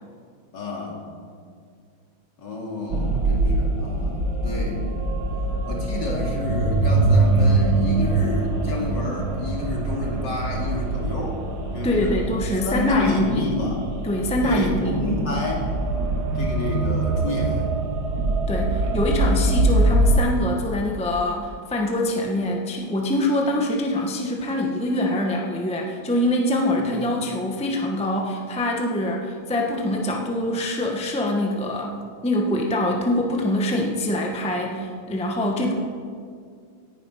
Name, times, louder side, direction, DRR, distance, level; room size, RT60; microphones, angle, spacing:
voice 1, 0.5-1.0 2.4-4.9 5.6-11.4 11.7-12.1 12.7-13.8 14.4-15.7 16.3-17.7 26.8-27.0, left 2 dB, 55° left, -1 dB, 3.1 m, -30 dB
sound 1, 2.9-20.2, right 2 dB, 55° right, 1.8 m, -23 dB
voice 2, 11.8-13.5 14.0-15.0 18.5-31.9 32.2-35.8, left 1 dB, 5° left, 0 dB, 1.1 m, -24 dB
18.0 x 10.5 x 5.7 m, 2.1 s
omnidirectional pair, 2.3 m